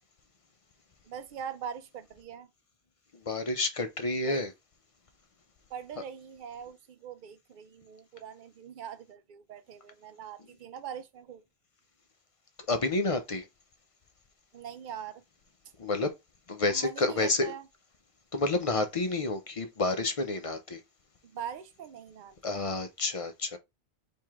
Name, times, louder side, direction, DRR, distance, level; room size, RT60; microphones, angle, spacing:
voice 1, 1.1-2.5 4.2-4.5 5.7-11.4 14.5-15.2 16.7-17.7 21.2-22.4, right 8 dB, 55° right, 0.7 m, -42 dB
voice 2, 3.1-4.5 12.7-13.5 15.8-16.1 16.5-17.5 18.3-20.8 22.4-23.6, left 2 dB, 40° left, 0.5 m, -29 dB
4.7 x 2.7 x 3.5 m
omnidirectional pair, 1.1 m